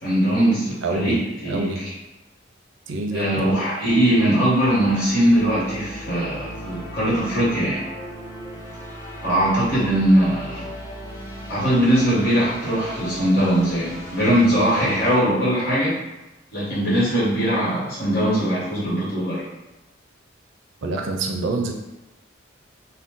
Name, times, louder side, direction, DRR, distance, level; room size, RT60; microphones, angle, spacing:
voice 1, 0.0-1.7 3.1-7.8 9.2-10.7 11.5-15.9 16.5-19.4, right 1 dB, 55° left, -9 dB, 1.4 m, -20 dB
voice 2, 0.8-1.2 1.4-1.8 2.9-3.5 20.8-21.7, right 2 dB, 75° right, 2 dB, 0.4 m, -26 dB
sound 1, 3.8-15.2, equal, 15° left, 0.5 m, -37 dB
2.5 x 2.1 x 3.6 m, 1.0 s
head